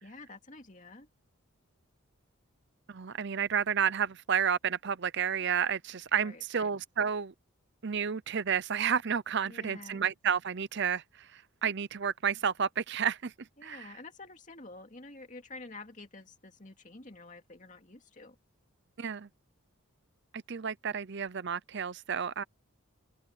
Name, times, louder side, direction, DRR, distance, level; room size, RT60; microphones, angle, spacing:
voice 1, 0.0-1.1 6.2-6.7 9.5-10.0 13.6-18.4, left 3 dB, 35° left, 2.4 m, -49 dB
voice 2, 2.9-7.3 7.8-11.0 11.3-13.3 13.6-13.9 19.0-19.3 20.3-22.4, right 7 dB, 50° right, 0.6 m, -31 dB
open air
head